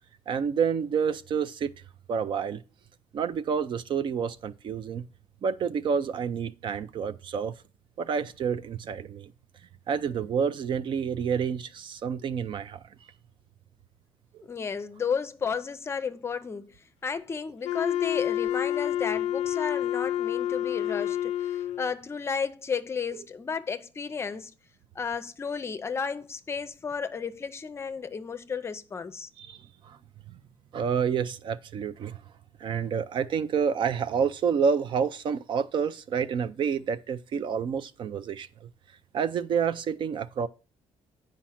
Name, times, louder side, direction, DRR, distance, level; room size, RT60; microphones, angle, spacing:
voice 1, 0.3-1.7 2.1-2.6 3.1-5.0 5.4-7.6 8.0-9.3 9.9-12.8 23.1-23.3 29.4-29.6 29.8-30.0 30.7-32.2 32.6-38.7 39.1-40.5, right 6 dB, 50° right, 0.5 m, -29 dB
voice 2, 14.4-24.5 24.9-29.3, left 6 dB, 25° left, 0.6 m, -33 dB
Wind instrument woodwind instrument, 17.6-21.9, left 11 dB, 80° left, 0.4 m, -28 dB
8.8 x 5.2 x 5.7 m
cardioid pair, 165°, 11 cm